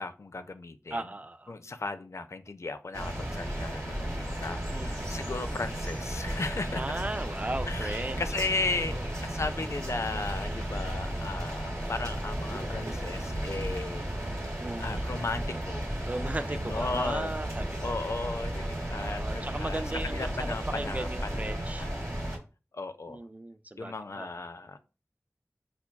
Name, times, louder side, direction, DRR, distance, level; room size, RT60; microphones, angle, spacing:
voice 1, 0.0-1.0 1.5-6.8 7.7-14.1 14.8-15.9 16.5-17.4 17.8-21.9 22.7-23.2 23.8-24.8, left 3 dB, 65° left, 10 dB, 0.4 m, -36 dB
voice 2, 0.9-1.6 4.7-5.2 6.7-8.2 8.9-9.1 14.6-15.1 16.1-18.1 19.2-21.8 23.1-24.4, right 2 dB, 30° right, 11 dB, 0.3 m, -37 dB
sound 1, 2.9-22.4, right 1 dB, 80° right, 1.0 m, -34 dB
5.7 x 2.2 x 2.2 m, 0.33 s
wide cardioid pair, 50°, 5 cm